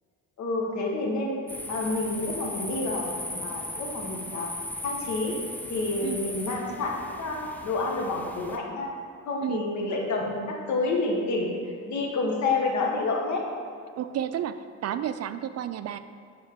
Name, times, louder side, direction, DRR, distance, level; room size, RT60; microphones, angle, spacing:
voice 1, 0.4-1.4 1.7-4.5 4.8-5.3 5.7-8.9 9.3-11.5 11.9-13.4, left 3 dB, 70° left, 0 dB, 1.5 m, -29 dB
sound 1, 1.5-8.6, left 1 dB, 5° left, 0.6 m, -37 dB
voice 2, 14.0-16.0, right 10 dB, 55° right, 12 dB, 0.4 m, -31 dB
11.0 x 4.3 x 3.7 m, 2.4 s
cardioid pair, 90°, 30 cm